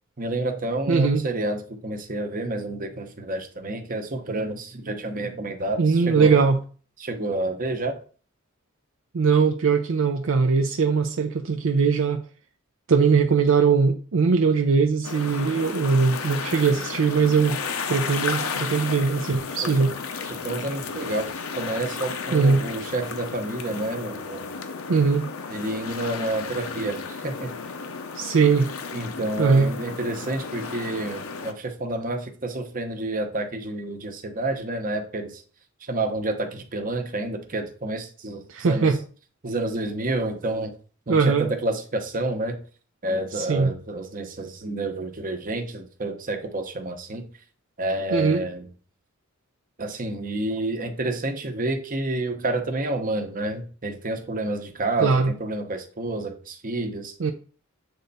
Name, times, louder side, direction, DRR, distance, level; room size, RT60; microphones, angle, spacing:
voice 1, 0.2-6.4 7.0-8.0 19.6-19.7 20.3-21.3 21.6-24.5 25.5-27.5 28.9-35.4 35.8-38.9 39.4-40.7 41.1-42.6 43.0-47.3 47.8-48.7 49.8-57.1, right 2 dB, 40° right, 0.9 m, -29 dB
voice 2, 0.9-1.2 5.8-6.6 9.1-12.2 12.9-17.6 17.9-19.9 22.3-22.6 24.9-25.3 28.1-28.7 29.4-29.7 38.5-39.0 41.1-41.5 43.3-43.7 48.1-48.4 55.0-55.3 57.2-57.3, right 5 dB, 65° right, 0.5 m, -20 dB
sound 1, 15.0-31.5, left 5 dB, 80° left, 0.7 m, -33 dB
7.8 x 3.3 x 4.0 m
head